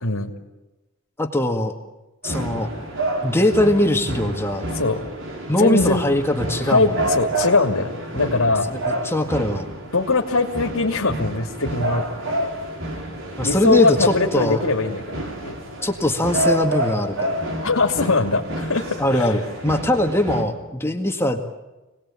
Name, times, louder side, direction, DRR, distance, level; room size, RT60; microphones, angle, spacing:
voice 1, 1.2-1.7 2.2-2.7 3.2-4.7 5.5-6.9 8.9-9.7 13.4-14.6 15.8-17.4 19.0-21.4, left 1 dB, 10° left, 4 dB, 1.9 m, -21 dB
sound 1, 2.2-20.4, right 1 dB, 60° right, 4.5 m, -29 dB
voice 2, 5.6-6.0 6.7-8.7 9.9-12.2 13.4-15.0 15.4-15.6 17.6-19.3, left 3 dB, 75° left, 1 dB, 2.7 m, -21 dB
27.5 x 20.0 x 8.8 m, 1.1 s
head